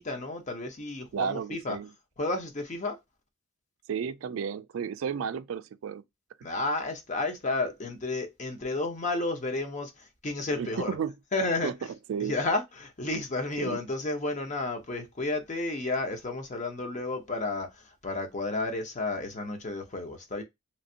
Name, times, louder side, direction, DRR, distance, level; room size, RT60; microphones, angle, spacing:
voice 1, 0.0-1.8 2.2-3.0 6.4-10.9 11.3-11.7 12.2-20.4, left 2 dB, 35° left, 0.8 m, -32 dB
voice 2, 1.1-1.9 3.9-6.0 10.5-11.1 11.6-11.7 12.1-12.4 13.6-13.8, right 7 dB, 75° right, 0.3 m, -32 dB
3.2 x 2.6 x 2.7 m
head